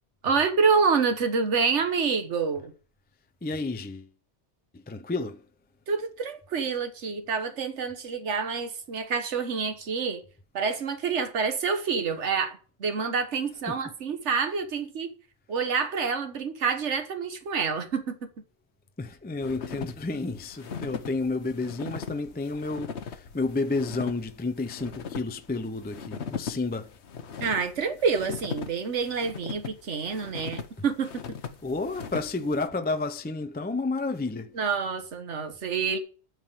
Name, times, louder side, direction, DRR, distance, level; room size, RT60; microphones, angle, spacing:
voice 1, 0.2-2.7 5.9-10.2 10.5-15.1 15.5-18.4 27.4-31.4 34.5-36.0, right 5 dB, 75° right, 1.5 m, -27 dB
voice 2, 3.4-4.1 4.7-5.4 13.7-13.8 19.0-26.9 31.6-34.6, left 3 dB, 15° left, 0.4 m, -31 dB
sound 1, 19.4-32.7, left 6 dB, 70° left, 1.2 m, -39 dB
9.4 x 6.1 x 8.1 m
omnidirectional pair, 1.2 m